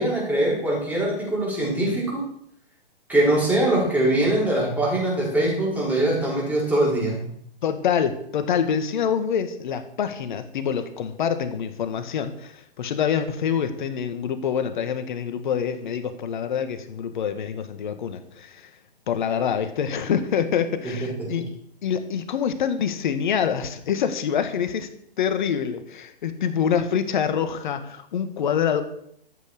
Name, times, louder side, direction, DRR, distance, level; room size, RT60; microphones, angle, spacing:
voice 1, 0.0-2.2 3.1-7.3 20.8-21.3, right 1 dB, 5° right, -5 dB, 5.8 m, -22 dB
voice 2, 7.6-18.7 19.1-21.5 21.8-24.9 25.2-28.8, left 7 dB, 55° left, 9 dB, 1.8 m, -26 dB
13.5 x 8.3 x 6.6 m, 0.70 s
hypercardioid pair, 125°, 29 cm